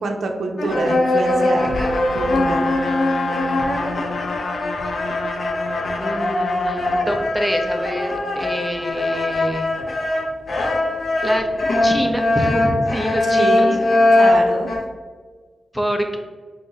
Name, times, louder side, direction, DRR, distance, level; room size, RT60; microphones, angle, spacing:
voice 1, 0.0-1.8 2.1-2.7 13.3-13.8 14.1-14.7, right 3 dB, 80° right, 3 dB, 0.6 m, -25 dB
sound 1, 0.6-14.8, left 2 dB, 60° left, 0.8 m, -21 dB
Trumpet, 1.8-7.1, left 3 dB, 85° left, 0.3 m, -29 dB
voice 2, 6.0-9.7 11.2-11.5 11.8-13.7 15.7-16.2, equal, ahead, 4 dB, 0.6 m, -25 dB
4.0 x 2.6 x 3.9 m, 1.5 s
cardioid pair, 80°, 0 cm